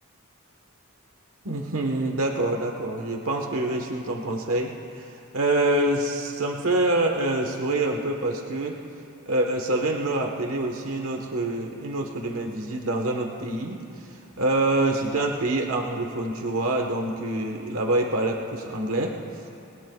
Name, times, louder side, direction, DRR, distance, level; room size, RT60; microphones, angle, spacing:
voice 1, 1.4-4.8 5.3-8.8 9.2-13.8 14.4-19.2, right 2 dB, 90° right, 1 dB, 1.4 m, -26 dB
28.5 x 20.5 x 2.4 m, 2.7 s
head